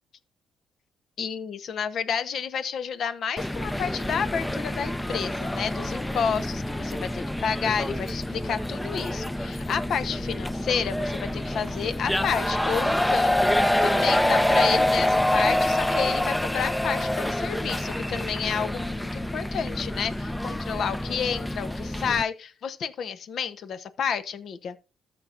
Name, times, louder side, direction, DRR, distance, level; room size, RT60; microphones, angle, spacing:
voice 1, 1.2-24.8, left 7 dB, 65° left, 1.0 m, -30 dB
sound 1, 3.4-22.2, left 1 dB, 5° left, 0.5 m, -27 dB
13.5 x 6.2 x 2.6 m
cardioid pair, 90°, 0 cm